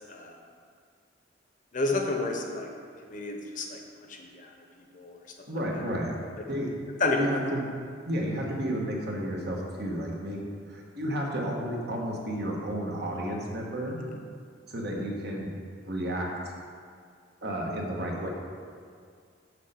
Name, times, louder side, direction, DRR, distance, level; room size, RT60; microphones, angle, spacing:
voice 1, 1.7-2.7 3.1-3.8 4.1-4.5 4.9-5.2 7.0-7.3, left 3 dB, 45° left, 2 dB, 0.8 m, -30 dB
voice 2, 5.5-6.1 6.5-6.7 7.2-7.6 8.1-10.4 10.7-14.0 14.7-15.5 15.8-16.5 17.4-18.3, equal, 55° right, -1 dB, 1.3 m, -32 dB
6.6 x 5.4 x 6.4 m, 2.2 s
head